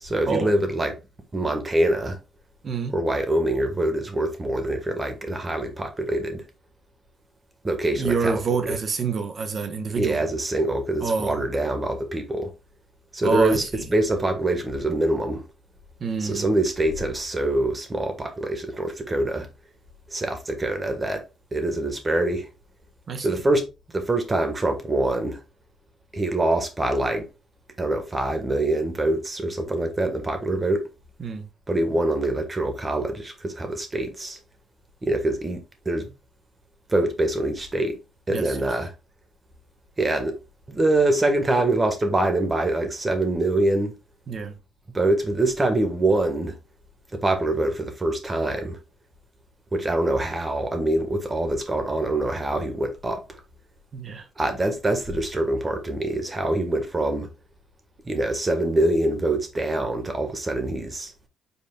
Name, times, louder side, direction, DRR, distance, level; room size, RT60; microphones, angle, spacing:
voice 1, 0.0-0.9 1.3-2.2 2.9-6.5 7.6-8.8 10.0-12.5 13.1-13.6 13.9-15.4 16.2-19.5 20.1-21.2 21.5-22.5 23.2-23.6 23.9-25.4 26.1-27.3 27.8-30.9 31.7-34.4 35.0-36.1 36.9-38.0 38.3-38.9 40.0-40.4 40.7-43.9 44.9-46.6 47.1-48.8 49.7-53.4 54.4-57.3 58.0-61.1, right 2 dB, 25° right, 1.3 m, -24 dB
voice 2, 2.6-3.0 7.9-10.2 11.0-11.5 13.2-13.9 16.0-16.5 23.1-23.3 31.2-31.5 38.3-38.6 44.3-44.6 53.9-54.3, right 4 dB, 45° right, 1.0 m, -27 dB
5.6 x 4.2 x 2.2 m
cardioid pair, 90°, 0 cm